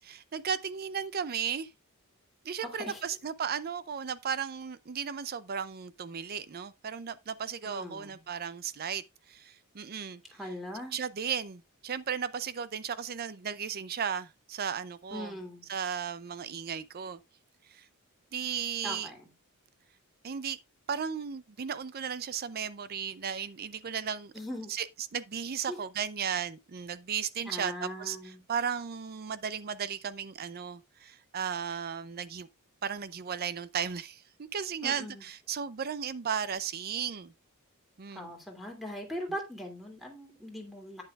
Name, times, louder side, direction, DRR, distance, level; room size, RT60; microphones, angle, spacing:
voice 1, 0.0-1.7 2.4-10.2 10.9-15.3 15.7-17.2 17.7-17.9 18.3-19.1 20.2-20.6 20.9-24.3 24.7-24.9 25.1-28.2 28.5-32.5 32.8-37.3 38.0-38.3, right 7 dB, 45° right, 0.5 m, -35 dB
voice 2, 2.6-3.0 7.6-8.2 10.3-11.0 15.1-15.7 18.8-19.3 24.3-24.7 25.7-25.8 27.4-28.4 34.8-35.2 38.1-41.0, equal, ahead, 2.6 m, -40 dB
10.5 x 9.1 x 2.4 m
head